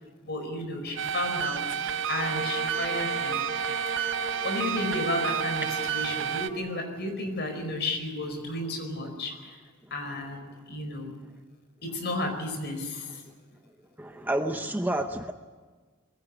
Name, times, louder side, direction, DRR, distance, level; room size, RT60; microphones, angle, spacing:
voice 1, 0.2-1.6 2.1-3.4 4.4-9.6 9.9-11.1 11.8-13.2, left 1 dB, 50° left, 5 dB, 4.8 m, -33 dB
sound 1, 1.0-6.5, right 9 dB, 60° right, 0.7 m, -30 dB
sound 2, 1.8-6.7, right 2 dB, 45° right, 2.5 m, -37 dB
voice 2, 14.0-15.3, right 1 dB, 10° right, 6 dB, 0.7 m, -29 dB
22.0 x 16.5 x 9.8 m, 1.4 s
head